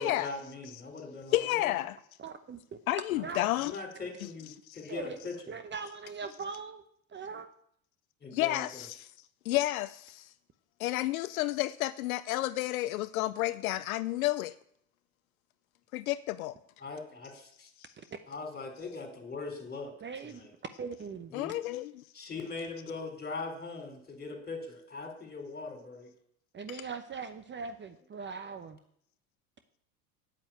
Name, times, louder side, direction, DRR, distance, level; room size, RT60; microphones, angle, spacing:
voice 1, 0.0-1.7 3.2-3.3 3.6-5.6 8.2-8.8 16.8-17.7 18.3-19.9 20.2-20.5 21.3-21.5 22.1-26.1, left 3 dB, 20° left, 4.1 m, -41 dB
voice 2, 1.3-2.0 2.9-3.8 4.7-4.8 8.3-9.1 9.4-10.3 10.8-14.5 15.9-16.6 21.3-22.0 26.7-26.8, left 16 dB, 75° left, 0.6 m, -31 dB
voice 3, 2.2-3.5 4.9-5.2 5.5-6.8 7.1-7.5 18.0-18.1 20.0-20.4 20.8-21.3 26.5-28.8, right 5 dB, 25° right, 0.9 m, -41 dB
8.8 x 8.4 x 8.7 m
hypercardioid pair, 80°, 43 cm